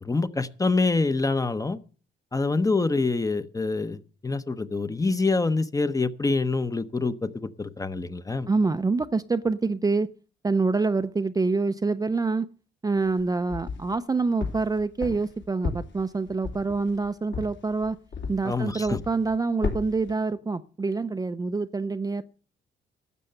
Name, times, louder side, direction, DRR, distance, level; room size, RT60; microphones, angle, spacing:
voice 1, 0.0-1.8 2.3-8.5 18.4-19.0, left 3 dB, 15° left, 12 dB, 0.8 m, -26 dB
voice 2, 8.5-10.1 10.4-12.5 12.8-18.0 18.3-22.2, right 3 dB, 20° right, 10 dB, 0.5 m, -26 dB
sound 1, 13.0-14.0 14.4-18.6 18.8-19.3 19.6-20.1, left 5 dB, 65° left, 3.3 m, -34 dB
12.5 x 7.6 x 6.7 m, 0.39 s
cardioid pair, 90°, 20 cm